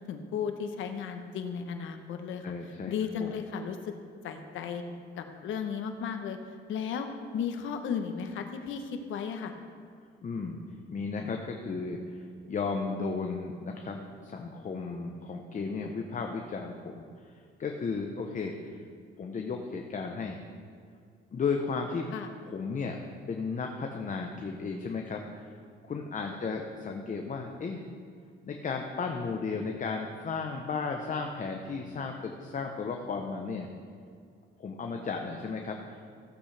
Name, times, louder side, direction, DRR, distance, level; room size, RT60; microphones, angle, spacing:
voice 1, 0.0-2.5 2.9-3.9 4.2-4.8 5.2-6.4 6.7-7.1 7.3-9.5 22.1-22.3 26.3-26.4, left 7 dB, 85° left, 6 dB, 1.0 m, -35 dB
voice 2, 2.4-2.9 3.2-3.3 10.2-10.6 10.9-18.8 19.2-20.4 21.3-22.1 22.5-23.0 23.3-25.5 25.8-27.9 28.4-33.7 34.6-36.1, left 4 dB, 40° left, 3 dB, 0.9 m, -34 dB
15.5 x 8.0 x 3.4 m, 2.2 s
cardioid pair, 90°, 20 cm